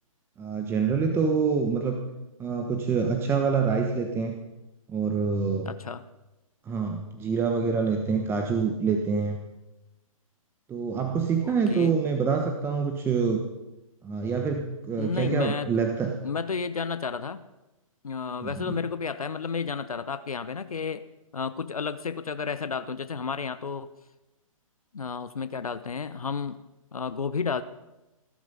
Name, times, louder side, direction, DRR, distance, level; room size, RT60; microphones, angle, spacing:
voice 1, 0.4-2.0 2.4-4.4 4.9-5.7 6.7-9.4 10.7-13.5 14.0-16.1 18.4-18.7, right 5 dB, 15° right, 4 dB, 1.2 m, -26 dB
voice 2, 5.6-6.0 11.4-11.9 15.0-15.7 16.2-17.4 18.0-21.0 21.3-23.9 24.9-26.6 26.9-27.6, left 5 dB, 85° left, 12 dB, 0.9 m, -32 dB
19.0 x 12.0 x 5.5 m, 1.0 s
hypercardioid pair, 135°, 18 cm